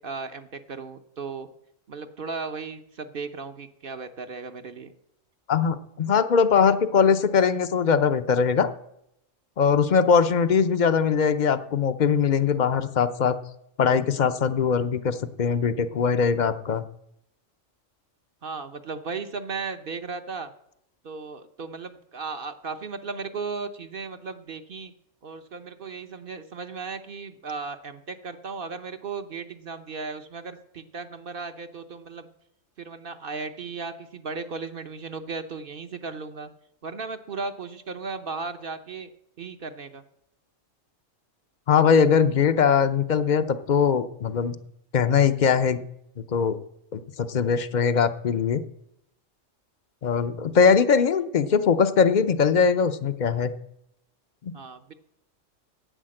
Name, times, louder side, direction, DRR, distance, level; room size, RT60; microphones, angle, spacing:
voice 1, 0.0-1.5 1.9-4.9 18.4-20.5 21.0-24.9 25.2-32.3 32.8-36.5 36.8-39.1 39.4-40.0 54.5-54.9, right 4 dB, 50° right, 8 dB, 0.9 m, -36 dB
voice 2, 5.5-8.7 9.6-13.4 13.8-16.8 41.7-44.6 44.9-45.8 46.3-46.6 46.9-48.6 50.0-53.5 54.4-54.5, left 6 dB, 50° left, 11 dB, 0.6 m, -21 dB
10.0 x 8.6 x 7.6 m, 0.77 s
omnidirectional pair, 1.3 m